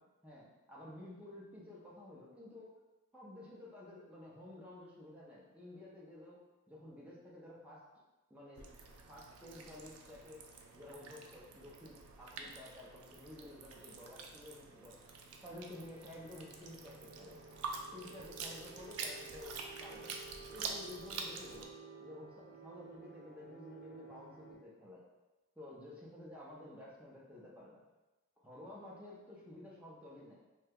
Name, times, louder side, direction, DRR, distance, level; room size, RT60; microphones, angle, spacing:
voice 1, 0.2-2.7 3.1-6.4 6.7-7.8 8.3-8.7 9.0-10.4 10.7-15.0 15.4-17.4 17.9-20.2 20.5-21.7 22.0-25.0 25.6-27.8 28.4-30.4, left 1 dB, 5° right, -6 dB, 0.5 m, -52 dB
sound 1, 8.6-21.7, right 4 dB, 80° right, 0.4 m, -47 dB
sound 2, 15.0-24.5, right 4 dB, 45° right, 1.4 m, -54 dB
2.8 x 2.1 x 3.4 m, 1.1 s
head